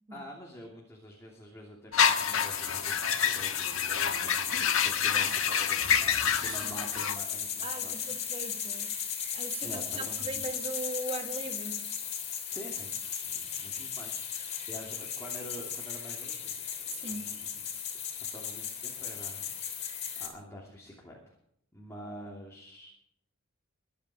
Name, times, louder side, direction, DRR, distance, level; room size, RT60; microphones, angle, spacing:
voice 1, 0.1-8.1 9.6-10.4 12.5-16.6 17.1-17.7 18.2-21.4 21.7-22.9, equal, 15° left, 2.8 m, -47 dB
sound 1, 1.9-7.2, left 8 dB, 75° left, 1.3 m, -28 dB
sound 2, 2.0-20.3, left 8 dB, 35° left, 3.2 m, -36 dB
voice 2, 7.6-8.9 9.3-11.9 16.9-17.4, right 2 dB, 30° right, 1.6 m, -39 dB
23.0 x 9.3 x 4.9 m
head